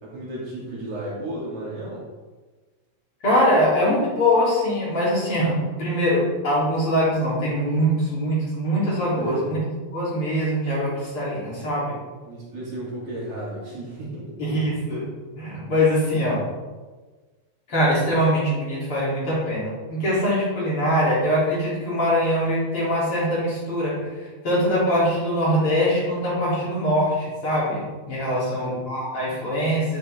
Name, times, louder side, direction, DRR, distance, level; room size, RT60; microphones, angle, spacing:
voice 1, 0.0-2.0 9.1-9.6 12.2-14.3 28.2-28.7, right 1 dB, 70° right, -7 dB, 4.3 m, -33 dB
voice 2, 3.2-9.6 9.9-11.9 14.4-15.0 15.4-16.4 17.7-23.9 24.4-30.0, equal, 45° left, -7 dB, 4.0 m, -22 dB
11.5 x 7.1 x 3.6 m, 1.3 s
omnidirectional pair, 3.3 m